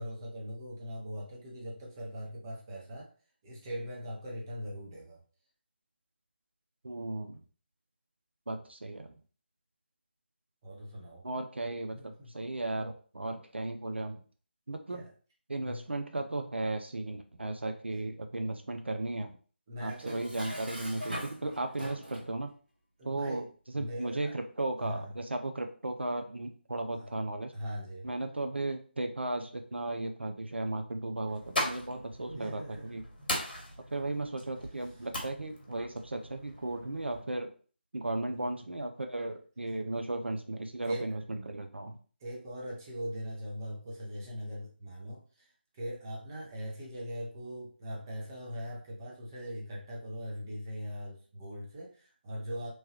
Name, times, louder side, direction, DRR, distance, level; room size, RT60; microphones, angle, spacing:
voice 1, 0.0-3.1 3.4-5.2 10.6-11.2 11.9-12.5 14.9-15.1 15.6-15.9 19.7-20.3 23.0-23.5 23.7-24.4 24.8-25.2 27.0-27.1 27.5-28.1 32.3-32.9 38.4-38.6 40.8-41.1 42.2-52.7, equal, 20° right, -3 dB, 0.6 m, -41 dB
voice 2, 6.8-7.4 8.5-9.1 11.2-14.2 14.7-15.0 15.5-19.4 19.8-22.5 23.0-23.4 23.7-27.5 28.0-33.0 33.9-37.5 37.9-42.0, right 2 dB, 75° right, 5 dB, 0.4 m, -35 dB
Dishes pots and pans, 19.9-22.3, equal, 50° right, 1.0 m, -42 dB
sound 1, 31.2-37.2, left 1 dB, 55° left, 1.0 m, -39 dB
3.0 x 2.2 x 2.9 m, 0.40 s
figure-of-eight pair, 155°, 6 cm